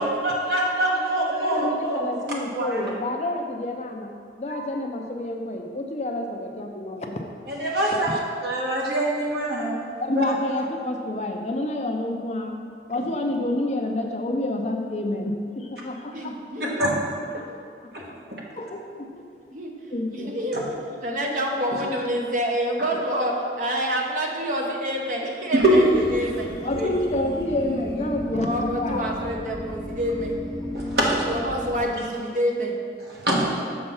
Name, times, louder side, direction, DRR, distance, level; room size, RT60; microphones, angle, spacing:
voice 1, 0.0-2.2 2.5-2.9 4.5-4.7 7.5-9.9 10.2-10.3 10.5-10.6 16.6-16.9 20.5-20.6 25.5-25.7 30.7-31.2 33.1-33.7, right 1 dB, 65° right, -3 dB, 1.3 m, -24 dB
voice 2, 1.4-4.1 4.4-7.3 10.0-12.6 12.9-16.4 16.6-16.7 17.4-17.5 18.0-18.1 18.6-19.2 19.9-20.3 26.6-29.1, left 1 dB, 40° left, 3 dB, 0.5 m, -28 dB
voice 3, 16.1-16.9 18.0-18.1 19.5-20.6 21.0-25.8 26.1-27.0 28.3-30.4 31.1-32.8, equal, 45° right, 0 dB, 0.9 m, -27 dB
sound 1, 25.6-31.8, left 1 dB, 20° left, 1.0 m, -34 dB
6.7 x 4.4 x 5.5 m, 2.2 s
head